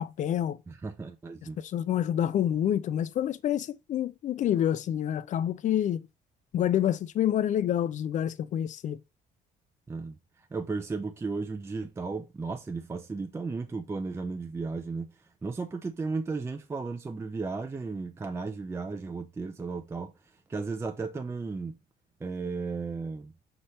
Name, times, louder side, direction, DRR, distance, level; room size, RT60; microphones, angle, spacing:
voice 1, 0.0-0.6 1.6-6.1 6.5-9.0, left 10 dB, 45° left, 0.4 m, -28 dB
voice 2, 0.7-1.6 9.9-21.8 22.2-23.3, right 4 dB, 15° right, 0.4 m, -35 dB
5.5 x 2.9 x 3.2 m
cardioid pair, 110°, 17 cm